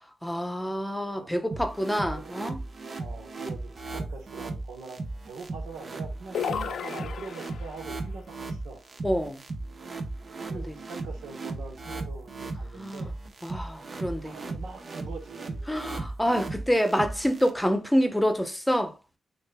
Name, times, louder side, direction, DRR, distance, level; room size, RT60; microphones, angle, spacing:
voice 1, 0.2-2.6 9.0-9.4 10.5-10.7 12.7-13.0 13.4-14.4 15.7-18.9, equal, 5° left, 0.8 m, -27 dB
sound 1, 1.5-17.5, right 3 dB, 50° right, 0.7 m, -37 dB
voice 2, 3.0-8.8 10.5-13.1 14.2-15.7, right 4 dB, 85° right, 0.9 m, -43 dB
sound 2, 6.3-7.9, left 8 dB, 75° left, 0.4 m, -33 dB
6.3 x 2.5 x 2.2 m
supercardioid pair, 50°, 0 cm